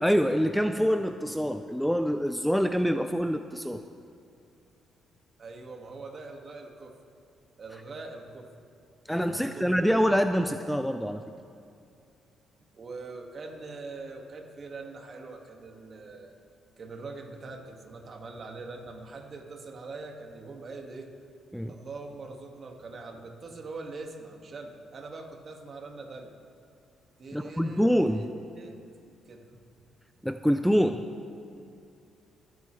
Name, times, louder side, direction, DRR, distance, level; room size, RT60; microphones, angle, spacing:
voice 1, 0.0-3.8 9.1-11.2 21.5-21.7 27.3-28.3 30.2-31.0, equal, ahead, 8 dB, 0.4 m, -25 dB
voice 2, 5.4-6.9 7.6-8.5 9.3-9.9 12.7-16.3 16.8-21.1 21.7-26.3 27.2-28.3 28.6-28.8 29.3-29.5, right 3 dB, 45° right, 2 dB, 1.9 m, -43 dB
25.5 x 9.3 x 3.3 m, 2.4 s
cardioid pair, 90°, 0 cm